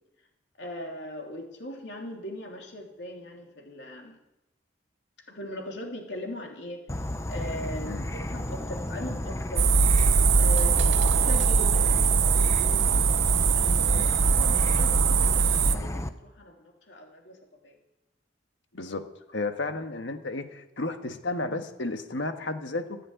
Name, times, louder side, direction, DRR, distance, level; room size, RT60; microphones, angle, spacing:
voice 1, 0.6-4.2 5.3-6.8 7.3-9.7 10.4-12.8 13.5-17.4 17.6-17.8, left 1 dB, 65° left, 1 dB, 3.3 m, -40 dB
Insect / Frog, 6.9-16.1, left 1 dB, 15° left, 0.8 m, -33 dB
sound 1, 9.6-15.8, right 5 dB, 75° right, 0.9 m, -21 dB
voice 2, 18.7-19.0 19.3-23.0, left 2 dB, 85° left, 6 dB, 1.6 m, -33 dB
15.0 x 10.0 x 9.1 m, 0.92 s
head